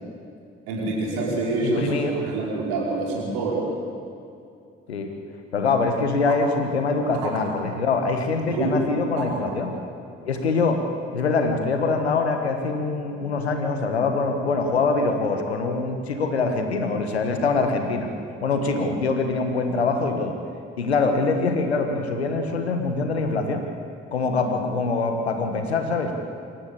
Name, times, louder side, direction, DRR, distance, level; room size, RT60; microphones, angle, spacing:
voice 1, 0.7-3.6 7.2-7.3 8.5-8.7 9.2-9.6, right 3 dB, 75° right, -3 dB, 5.1 m, -26 dB
voice 2, 1.6-2.2 4.9-5.1 5.5-9.7 10.2-10.8 11.1-18.1 18.4-20.4 20.8-23.6 24.1-26.2, left 4 dB, 90° left, 6 dB, 1.4 m, -24 dB
26.0 x 14.0 x 8.5 m, 2.5 s
figure-of-eight pair, 40°, 31 cm